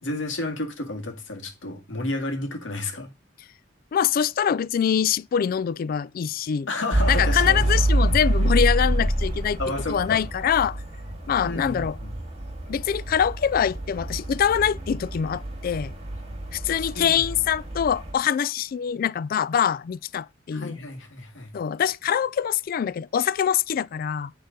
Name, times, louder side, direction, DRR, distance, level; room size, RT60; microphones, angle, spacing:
voice 1, 0.0-3.1 6.7-7.7 9.6-10.2 11.4-12.2 16.7-17.2 20.5-21.5, left 2 dB, 85° left, 2.1 m, -31 dB
voice 2, 3.9-6.7 7.1-9.6 9.9-10.8 11.3-12.0 12.7-15.9 16.5-20.8 21.5-24.3, left 8 dB, 50° left, 0.3 m, -24 dB
sound 1, 6.9-18.1, right 1 dB, 35° right, 2.0 m, -27 dB
8.9 x 3.9 x 5.2 m
head